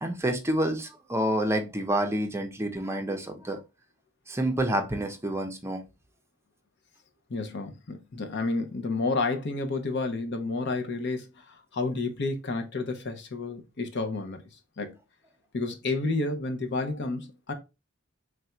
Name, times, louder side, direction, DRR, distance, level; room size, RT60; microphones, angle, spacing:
voice 1, 0.0-3.6 4.3-5.8, right 1 dB, 15° right, 0.5 m, -28 dB
voice 2, 7.3-14.4 14.8-14.9 15.5-17.5, left 3 dB, 55° left, 0.7 m, -30 dB
3.4 x 2.5 x 4.2 m
head